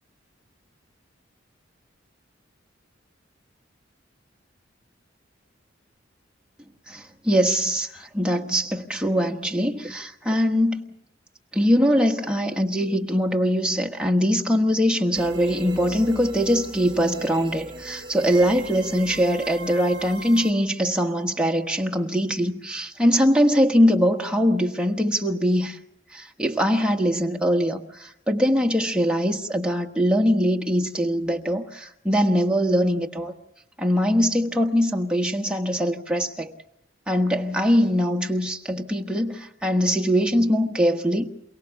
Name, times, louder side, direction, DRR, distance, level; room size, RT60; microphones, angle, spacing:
voice 1, 6.9-10.8 11.5-25.8 26.1-33.3 33.8-36.5 37.1-41.3, equal, 5° right, 1.2 m, -22 dB
sound 1, 15.1-20.5, right 3 dB, 30° right, 3.1 m, -38 dB
28.0 x 17.5 x 7.0 m
head